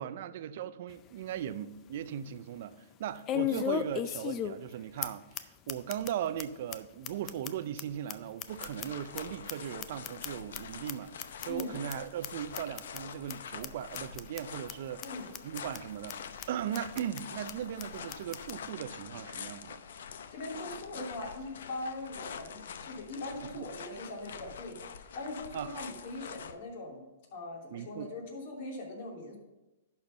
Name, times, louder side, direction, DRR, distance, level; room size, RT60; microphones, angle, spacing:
voice 1, 0.0-11.1 11.4-15.0 15.4-16.2 16.5-19.8 23.4-23.6 25.5-25.9 27.7-28.1, right 10 dB, 55° right, 13 dB, 0.5 m, -38 dB
sound 1, 0.9-1.0 1.5-1.6 3.3-4.7 5.0-5.1 5.3-5.4 5.7-6.1 6.4-6.5 6.7-6.8 7.0-9.2 9.5-10.6 10.9-11.0 11.2-11.6 11.9-12.0 12.2-12.3 12.5-13.0 13.3-13.4 13.6-13.7 13.9-14.4 14.7-14.8 15.0-15.1 15.3-15.8 16.1-16.2 16.4-16.5 16.7-17.2 17.5-17.6 17.8-17.9 18.1-18.5, left 10 dB, 30° left, 0.5 m, -35 dB
sound 2, 8.5-26.6, left 7 dB, 75° left, 0.7 m, -45 dB
voice 2, 20.3-27.0 27.3-29.4, left 2 dB, 50° left, -1 dB, 2.9 m, -41 dB
11.0 x 4.5 x 5.2 m, 1.0 s
hypercardioid pair, 135°, 0 cm